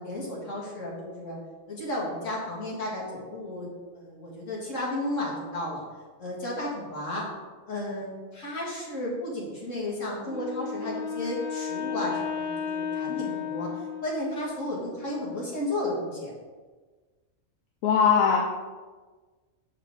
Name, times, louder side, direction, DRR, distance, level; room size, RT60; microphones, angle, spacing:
voice 1, 0.0-1.4 1.7-5.8 6.2-7.2 7.7-16.3, left 1 dB, 65° left, -5 dB, 2.4 m, -33 dB
Wind instrument woodwind instrument, 10.3-14.5, left 7 dB, 45° left, 0.6 m, -33 dB
voice 2, 17.8-18.4, left 7 dB, 85° left, 2 dB, 1.1 m, -20 dB
6.7 x 6.4 x 3.8 m, 1.4 s
omnidirectional pair, 1.4 m